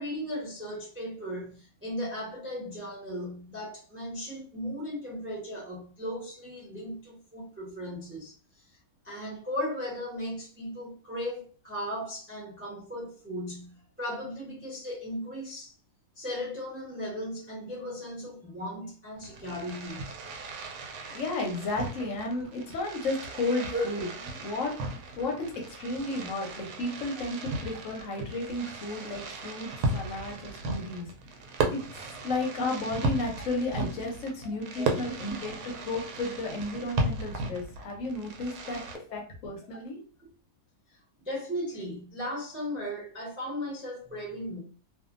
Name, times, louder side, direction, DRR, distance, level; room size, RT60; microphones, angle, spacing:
voice 1, 0.0-8.3 9.0-15.7 16.1-20.1 23.7-23.8 34.8-35.2 39.7-39.8 41.2-44.6, equal, 15° right, 0.5 m, -36 dB
Fireworks, 19.1-39.0, right 2 dB, 75° right, 1.1 m, -36 dB
voice 2, 21.1-24.7 25.2-31.1 31.7-31.8 32.2-38.8 39.1-40.0, left 2 dB, 60° left, 0.9 m, -33 dB
2.6 x 2.4 x 2.4 m
omnidirectional pair, 1.8 m